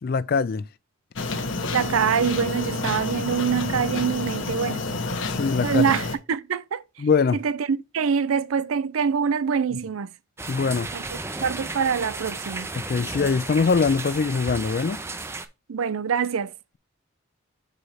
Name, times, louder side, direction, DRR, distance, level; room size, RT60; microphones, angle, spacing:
voice 1, 0.0-0.6 2.9-3.0 5.3-5.9 7.0-7.4 9.7-9.8 10.5-10.9 12.8-15.0, left 5 dB, 45° left, 0.4 m, -23 dB
sound 1, 1.2-6.2, left 3 dB, 65° left, 1.0 m, -29 dB
voice 2, 1.7-4.8 5.6-6.8 7.4-10.1 10.9-11.0 11.4-12.7 15.7-16.5, right 6 dB, 85° right, 0.5 m, -24 dB
sound 2, 10.4-15.5, right 3 dB, 10° right, 0.5 m, -34 dB
6.3 x 4.9 x 4.1 m
head